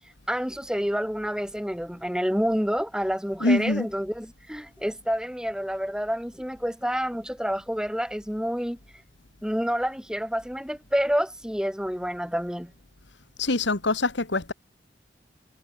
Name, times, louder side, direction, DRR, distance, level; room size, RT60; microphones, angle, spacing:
voice 1, 0.3-8.8 9.4-12.7, equal, 5° right, 3.8 m, -28 dB
voice 2, 3.4-3.9 13.4-14.5, left 2 dB, 80° left, 1.8 m, -24 dB
head